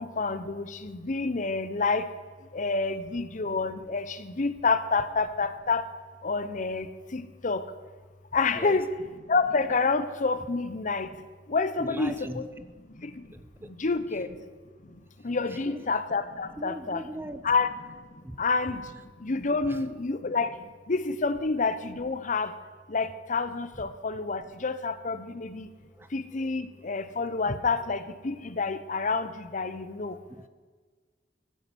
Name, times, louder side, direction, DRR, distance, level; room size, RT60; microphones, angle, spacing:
voice 1, 0.0-2.1 2.5-5.8 6.2-7.6 8.3-8.9 9.3-11.1 11.5-12.4 13.0-13.1 13.8-14.3 15.2-17.0 17.4-17.7 18.4-18.8 19.2-20.5 20.9-22.5 22.9-25.7 26.1-30.1, left 4 dB, 45° left, 12 dB, 0.8 m, -28 dB
voice 2, 11.8-12.4 13.3-13.7 15.5-15.8 16.6-17.5 18.2-18.4 19.6-19.8 25.9-26.1 26.4-26.6 30.1-30.5, right 1 dB, 15° right, 11 dB, 0.5 m, -40 dB
15.5 x 9.5 x 6.2 m, 1.5 s
head